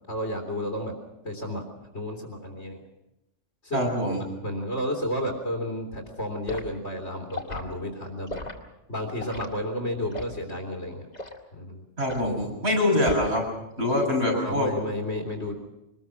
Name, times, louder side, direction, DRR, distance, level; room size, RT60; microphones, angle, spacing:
voice 1, 0.1-1.0 1.2-1.6 1.9-2.8 3.6-3.9 4.4-8.4 8.9-11.1 11.5-11.8 14.3-15.5, equal, 65° left, 0 dB, 3.4 m, -32 dB
voice 2, 3.7-4.2 12.0-13.4 13.8-14.7, left 1 dB, 55° right, -1 dB, 7.3 m, -24 dB
Liquid, 6.5-6.7 7.3-7.6 8.3-8.6 9.2-9.5 10.1-10.4 11.1-11.4 12.1-12.3 13.0-13.4 13.8-14.1, left 2 dB, 35° left, 2.3 m, -37 dB
24.0 x 20.5 x 6.2 m, 0.91 s
omnidirectional pair, 1.3 m